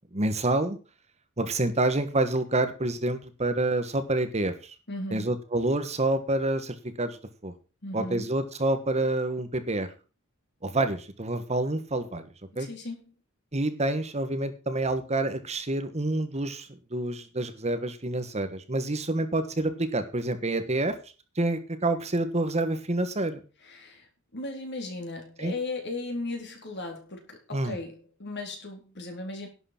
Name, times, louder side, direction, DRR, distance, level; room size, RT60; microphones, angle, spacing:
voice 1, 0.1-0.8 1.4-4.7 5.1-7.2 7.4-7.5 7.9-9.9 10.6-12.3 12.5-12.7 13.5-20.9 21.3-23.4 25.4-25.5 27.5-27.8, right 2 dB, 30° right, 1.4 m, -28 dB
voice 2, 4.9-5.3 7.8-8.3 12.6-13.0 23.6-29.5, left 2 dB, 55° left, 4.0 m, -36 dB
11.5 x 8.0 x 6.0 m
head